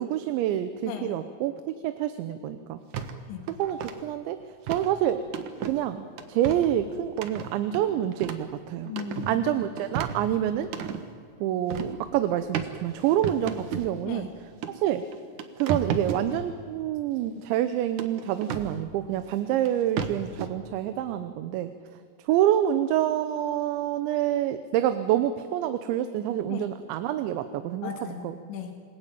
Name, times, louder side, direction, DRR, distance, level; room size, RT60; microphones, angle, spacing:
voice 1, 0.0-2.8 3.5-4.4 4.7-5.2 5.6-8.9 9.3-10.7 11.4-14.3 14.8-15.0 15.6-21.7 22.2-27.9 28.2-28.3, right 11 dB, 90° right, 10 dB, 3.3 m, -27 dB
sound 1, 2.9-3.1 3.5-3.9 4.7-4.9 5.3-5.8 6.2-6.7 7.2-8.5 8.9-9.4 9.8-11.0 11.7-12.0 12.5-12.7 13.2-13.9 14.6-14.7 15.1-16.3 18.0-18.7 19.7-19.8 20.0-20.5, right 7 dB, 60° right, 2.2 m, -33 dB
voice 2, 8.9-9.4 14.0-14.3 26.5-26.7 27.8-28.8, left 7 dB, 80° left, 4 dB, 4.2 m, -37 dB
28.0 x 20.5 x 9.1 m, 2.2 s
omnidirectional pair, 5.1 m